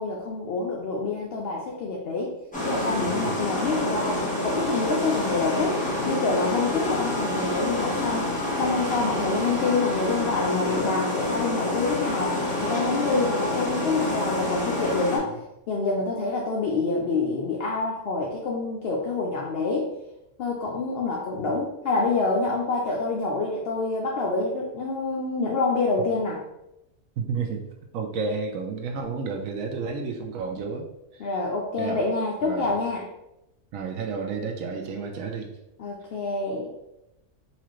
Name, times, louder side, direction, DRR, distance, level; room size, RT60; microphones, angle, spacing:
voice 1, 0.0-2.3 2.6-15.4 15.7-19.9 20.4-26.4 31.2-33.0 35.8-36.7, left 3 dB, 70° left, -3 dB, 0.5 m, -27 dB
sound 1, 2.5-15.2, left 1 dB, 5° left, 0.8 m, -28 dB
voice 2, 27.2-27.6 27.9-31.3 31.8-32.0 32.4-32.7 33.7-35.6, right 4 dB, 70° right, 2 dB, 0.9 m, -31 dB
4.1 x 2.5 x 3.0 m, 0.90 s
omnidirectional pair, 1.5 m